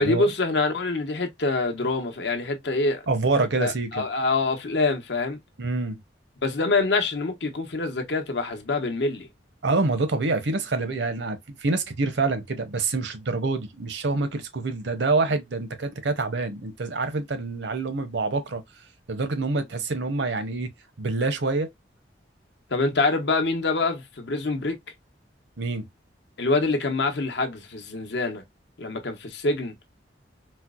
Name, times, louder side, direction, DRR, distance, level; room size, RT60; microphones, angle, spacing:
voice 1, 0.0-3.0 3.6-5.4 6.4-9.3 22.7-24.8 26.4-28.4 28.8-29.7, left 3 dB, 70° left, 0.8 m, -25 dB
voice 2, 3.1-4.0 5.6-6.0 9.6-18.6 19.1-20.7 21.0-21.7 25.6-25.9, right 3 dB, 75° right, 0.7 m, -26 dB
4.3 x 2.0 x 2.3 m
head